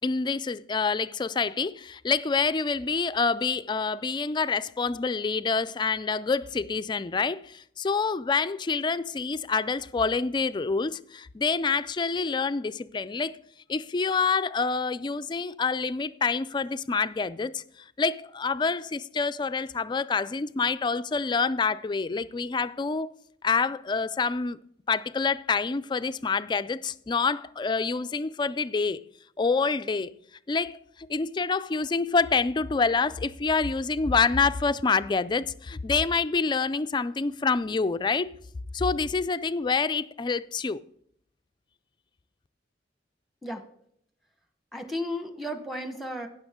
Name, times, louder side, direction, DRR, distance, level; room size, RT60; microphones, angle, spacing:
voice 1, 0.0-13.4 13.7-17.6 18.0-23.1 23.4-24.6 24.9-29.0 29.4-30.1 30.5-30.8 31.1-38.3 38.7-40.8, left 4 dB, 25° left, 0.3 m, -27 dB
voice 2, 44.7-46.3, left 1 dB, ahead, 1.1 m, -34 dB
16.0 x 6.1 x 3.6 m
head